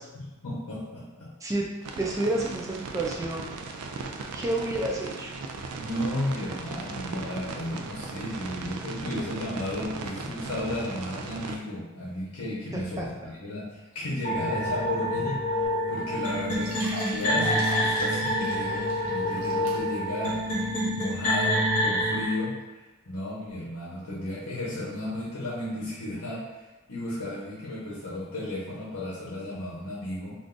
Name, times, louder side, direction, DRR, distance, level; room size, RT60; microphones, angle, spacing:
voice 1, 0.4-1.3 5.7-15.6 15.9-16.8 17.1-20.4 20.9-22.6 23.1-30.3, left 1 dB, 70° left, -7 dB, 0.8 m, -34 dB
sound 1, 1.8-11.6, right 4 dB, 85° right, 0.3 m, -37 dB
voice 2, 2.0-3.5 4.3-5.3 12.7-13.1, right 2 dB, 15° right, -1 dB, 0.4 m, -29 dB
sound 2, 14.2-22.3, equal, 35° left, 0.9 m, -27 dB
sound 3, 15.6-15.7 16.0-16.1 16.5-20.1 20.6-20.7 21.3-21.4, equal, 60° right, 0.8 m, -38 dB
2.5 x 2.3 x 3.7 m, 1.1 s
head